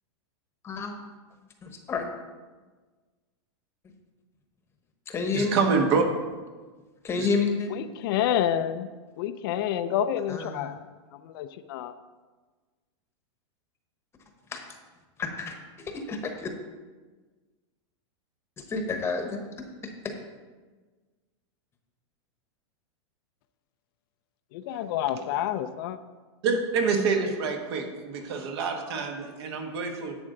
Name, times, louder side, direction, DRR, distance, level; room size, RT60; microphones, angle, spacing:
voice 1, 0.6-1.0 1.6-2.1 5.1-5.6 7.0-7.7 10.3-10.7 14.5-14.6 15.2-15.6 15.8-16.5 18.7-20.1, left 4 dB, 15° left, 5 dB, 1.0 m, -30 dB
voice 2, 5.3-6.0 7.2-7.3 26.4-30.2, right 5 dB, 60° right, 4 dB, 1.5 m, -26 dB
voice 3, 7.7-8.9 9.2-10.8 11.1-11.9 24.5-26.0, left 10 dB, 50° left, 10 dB, 0.5 m, -28 dB
11.0 x 8.0 x 3.9 m, 1.3 s
supercardioid pair, 155°, 15 cm